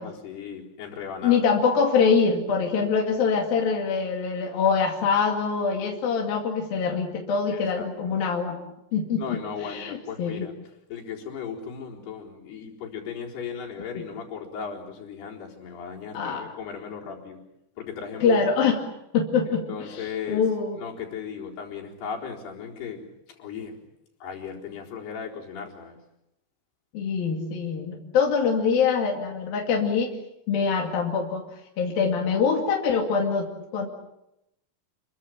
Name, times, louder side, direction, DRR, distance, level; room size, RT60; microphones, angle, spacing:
voice 1, 0.0-1.4 7.5-7.9 9.2-10.5 10.9-17.4 17.8-18.4 19.7-20.4 20.8-23.1 23.4-23.8 24.2-26.0, left 7 dB, 85° left, -1 dB, 6.3 m, -36 dB
voice 2, 1.2-8.6 8.9-10.5 16.1-16.5 18.2-18.8 19.1-20.8 26.9-30.1 30.5-31.5 31.8-33.9, left 5 dB, 65° left, 0 dB, 4.1 m, -24 dB
29.5 x 22.5 x 7.5 m, 0.84 s
omnidirectional pair, 4.6 m